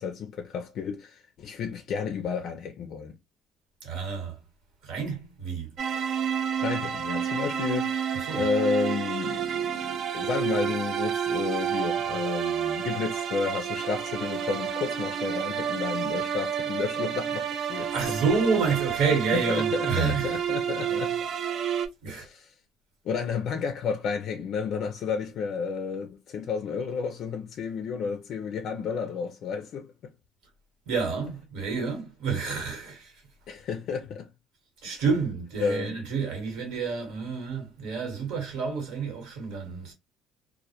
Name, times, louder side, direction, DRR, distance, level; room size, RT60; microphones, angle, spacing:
voice 1, 0.0-3.1 6.6-17.9 19.3-21.2 22.1-22.5 23.0-29.9 33.5-34.3 35.6-36.0, left 6 dB, 60° left, 0.4 m, -31 dB
voice 2, 3.8-4.4 4.8-5.7 8.1-8.5 17.8-20.4 22.0-22.3 30.9-33.1 34.8-39.9, right 5 dB, 75° right, 1.2 m, -29 dB
sound 1, 5.8-21.9, right 8 dB, 55° right, 0.3 m, -30 dB
2.1 x 2.1 x 2.7 m
cardioid pair, 100°, 0 cm